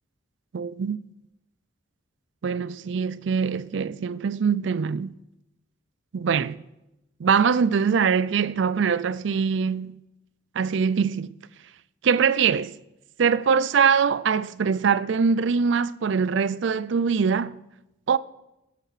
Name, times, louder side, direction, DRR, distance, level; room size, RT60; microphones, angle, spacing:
voice 1, 0.5-1.0 2.4-5.1 6.1-6.6 7.2-10.0 10.6-11.3 12.0-12.8 13.2-17.6 18.1-18.2, right 6 dB, 70° right, 0.4 m, -23 dB
19.5 x 6.7 x 4.9 m
head